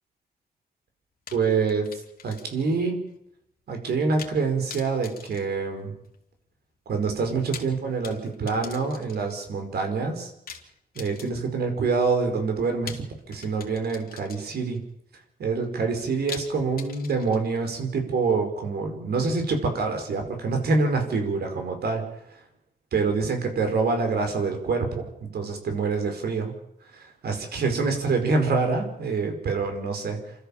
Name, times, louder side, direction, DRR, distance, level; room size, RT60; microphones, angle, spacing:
sound 1, 1.3-2.8 3.1-3.2 4.2-4.4 4.7-6.2 7.3-9.4 10.5-11.7 12.9-14.8 16.3-17.7, left 6 dB, 65° left, 2.8 m, -43 dB
voice 1, 1.3-1.9 2.2-3.1 3.7-5.9 6.8-10.3 10.9-14.8 15.4-22.0 22.3-22.4 22.9-26.5 26.9-30.2, right 4 dB, 85° right, 5 dB, 5.1 m, -26 dB
28.5 x 13.5 x 7.3 m, 0.79 s
wide cardioid pair, 125°, 16 cm